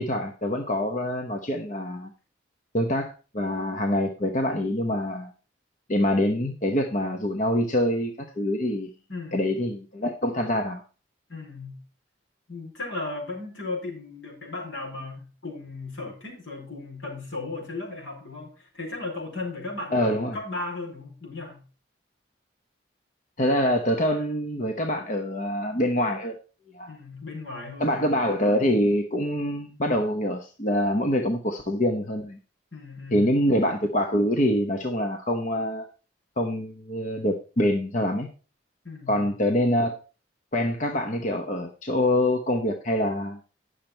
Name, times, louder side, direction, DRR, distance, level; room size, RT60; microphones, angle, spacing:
voice 1, 0.0-2.1 2.7-5.3 5.9-8.9 9.3-10.8 19.9-20.3 23.4-26.3 26.7-26.9 27.8-32.4 33.1-35.8 36.4-38.3 39.1-39.9 40.5-43.4, left 1 dB, 40° left, 4 dB, 0.9 m, -25 dB
voice 2, 9.1-9.5 11.3-11.8 12.5-21.6 26.9-28.1 32.7-33.4 38.8-39.3, left 3 dB, 75° left, 0 dB, 4.8 m, -36 dB
10.5 x 6.6 x 4.4 m, 0.36 s
head